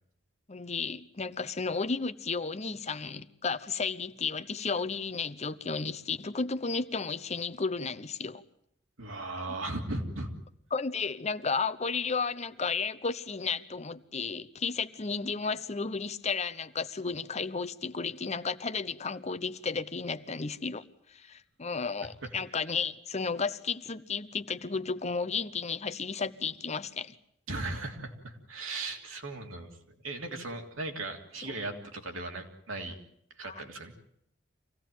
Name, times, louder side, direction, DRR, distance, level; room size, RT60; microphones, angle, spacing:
voice 1, 0.5-8.4 10.7-20.8 21.1-27.1 31.4-31.5 33.4-33.6, left 5 dB, 35° left, 0.9 m, -33 dB
voice 2, 9.0-10.3 22.2-22.3 27.5-29.7 30.0-33.0 33.4-33.9, right 2 dB, 85° right, 3.1 m, -37 dB
25.0 x 17.0 x 9.3 m
head